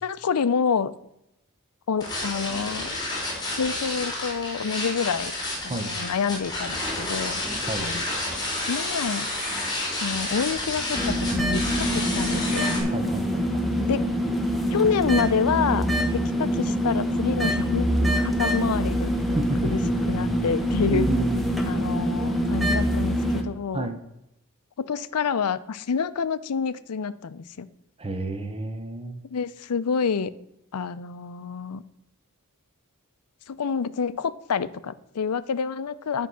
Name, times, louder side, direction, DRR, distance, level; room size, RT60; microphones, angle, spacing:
voice 1, 0.0-0.9 1.9-3.0 3.6-5.3 5.6-7.4 7.8-8.0 8.7-9.3 10.0-12.8 13.9-14.1 14.7-15.9 16.1-17.9 18.2-19.8 20.1-21.1 21.6-23.9 24.8-27.7 29.3-30.3 30.7-31.8 33.5-36.3, left 6 dB, 85° left, 15 dB, 0.5 m, -28 dB
sound 1, 2.0-12.8, left 2 dB, 20° left, 3.1 m, -30 dB
sound 2, 10.9-23.4, equal, ahead, 1.1 m, -25 dB
voice 2, 12.9-13.6 19.3-19.6 20.9-21.6 23.7-24.0 28.0-29.2, right 3 dB, 25° right, 6 dB, 0.8 m, -30 dB
9.3 x 5.4 x 6.1 m, 0.84 s
head